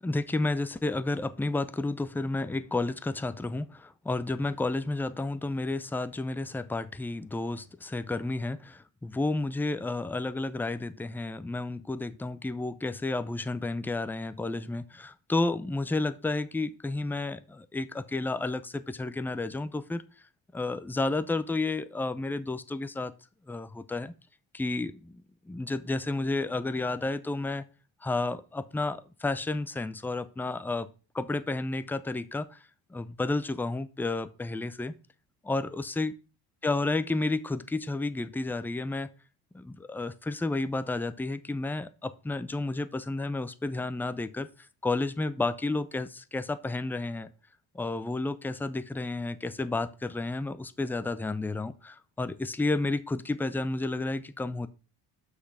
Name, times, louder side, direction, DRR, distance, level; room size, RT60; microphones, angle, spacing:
voice 1, 0.0-20.0 20.5-23.1 23.5-24.1 24.5-27.6 28.0-30.9 31.1-32.6 32.9-34.9 35.4-36.2 36.6-39.1 39.5-44.5 44.8-47.3 47.7-54.7, left 2 dB, 5° left, 0.4 m, -31 dB
6.4 x 5.9 x 4.8 m
supercardioid pair, 85°, 48 cm